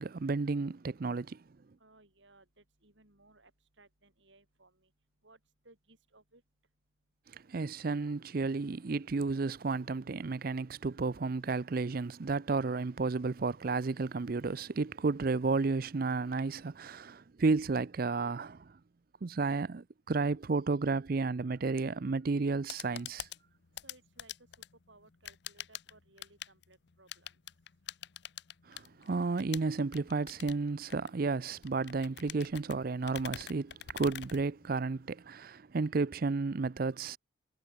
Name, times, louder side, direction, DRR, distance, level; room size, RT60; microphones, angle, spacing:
voice 1, 0.0-1.4 7.3-18.7 19.2-23.3 28.7-37.2, right 3 dB, 50° right, 0.5 m, -32 dB
voice 2, 1.8-3.5 3.8-4.9 5.2-5.4 5.6-6.4 23.8-24.3 24.9-27.3, right 2 dB, 70° right, 7.1 m, -62 dB
sound 1, 22.4-35.1, left 11 dB, 60° left, 0.7 m, -47 dB
head